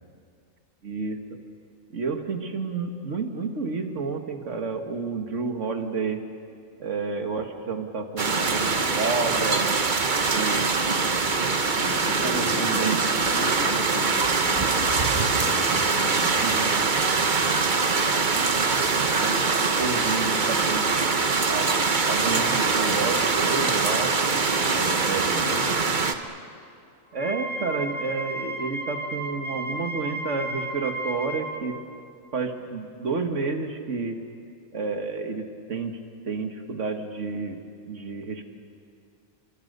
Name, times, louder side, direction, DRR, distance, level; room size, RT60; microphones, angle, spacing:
voice 1, 0.8-1.4 1.9-6.2 6.8-9.7 10.3-10.8 12.2-13.0 16.4-16.9 18.2-18.8 19.1-19.5 19.8-21.1 21.5-21.7 22.1-24.1 25.0-25.4 27.1-31.8 32.3-34.2 34.7-36.0 36.2-37.6 37.9-38.5, right 4 dB, 60° right, 5 dB, 2.1 m, -30 dB
sound 1, 8.2-26.1, right 4 dB, 35° right, 1.1 m, -23 dB
voice 2, 11.8-16.7 24.5-25.8, left 4 dB, 70° left, 5 dB, 2.1 m, -38 dB
Wind instrument woodwind instrument, 27.1-31.6, right 2 dB, 5° right, 1.8 m, -33 dB
30.0 x 25.0 x 6.8 m, 2.4 s
omnidirectional pair, 1.5 m